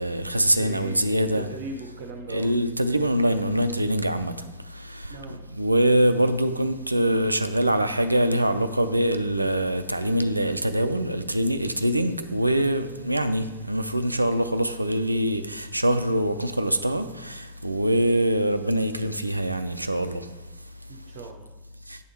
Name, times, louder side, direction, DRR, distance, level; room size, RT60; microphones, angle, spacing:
voice 1, 0.0-1.5 2.3-4.3 4.7-20.3 21.9-22.0, right 1 dB, 85° right, 0.3 m, -24 dB
voice 2, 0.5-2.5 5.1-5.4 20.9-21.5, right 3 dB, 50° right, 0.6 m, -39 dB
8.6 x 3.5 x 4.2 m
figure-of-eight pair, 90°, 0 cm